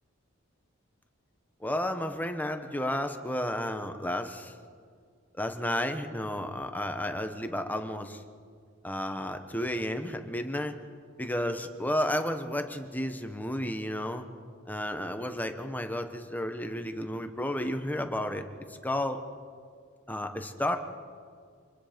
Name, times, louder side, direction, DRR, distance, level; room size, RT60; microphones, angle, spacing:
voice 1, 1.6-4.5 5.4-8.2 8.8-10.7 11.2-14.3 14.7-18.5 18.8-19.2 20.1-20.8, left 1 dB, 10° left, 7 dB, 1.3 m, -32 dB
26.5 x 21.5 x 5.3 m, 2.1 s
head